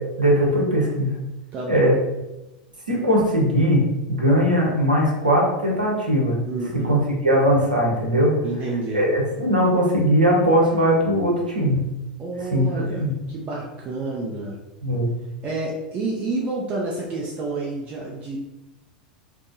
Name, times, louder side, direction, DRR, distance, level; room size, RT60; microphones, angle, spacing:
voice 1, 0.2-1.2 1.7-2.0 2.9-6.4 6.8-8.3 8.9-11.9 12.5-12.7 13.0-13.1 14.8-15.1, equal, 80° right, -2 dB, 0.8 m, -19 dB
voice 2, 1.5-1.8 6.5-7.0 8.4-9.1 12.2-14.5 15.4-18.4, right 2 dB, 30° right, -3 dB, 0.5 m, -29 dB
3.4 x 2.0 x 2.6 m, 0.97 s
figure-of-eight pair, 85°, 4 cm